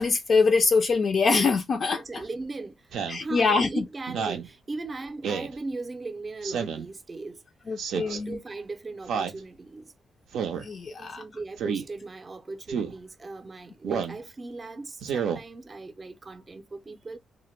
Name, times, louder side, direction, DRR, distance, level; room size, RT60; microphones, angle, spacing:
voice 1, 0.0-2.2 3.1-3.8 7.7-8.4 10.6-11.2, left 4 dB, 50° left, 0.3 m, -24 dB
voice 2, 1.9-7.4 7.7-9.9 11.0-17.2, right 3 dB, 30° right, 0.5 m, -38 dB
Speech synthesizer, 2.9-3.2 4.1-4.5 5.2-5.5 6.4-6.9 7.8-8.2 9.1-9.4 10.3-10.7 11.6-11.8 12.7-12.9 13.8-14.2 15.0-15.4, right 7 dB, 90° right, 0.5 m, -30 dB
2.1 x 2.1 x 3.0 m
cardioid pair, 100°, 0 cm